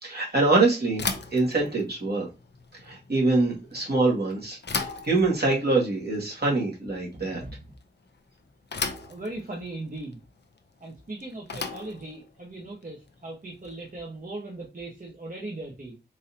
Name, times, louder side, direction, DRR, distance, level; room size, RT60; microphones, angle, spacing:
voice 1, 0.0-1.0 1.3-2.3 2.8-7.4, right 3 dB, 65° right, -3 dB, 1.6 m, -24 dB
Bicycle / Thump thud, 0.9-14.0, left 4 dB, 70° left, 0.5 m, -38 dB
voice 2, 7.1-7.8 9.0-10.2 10.8-16.0, right 2 dB, 50° right, -2 dB, 0.9 m, -39 dB
3.9 x 2.7 x 2.7 m, 0.28 s
wide cardioid pair, 50°, 18 cm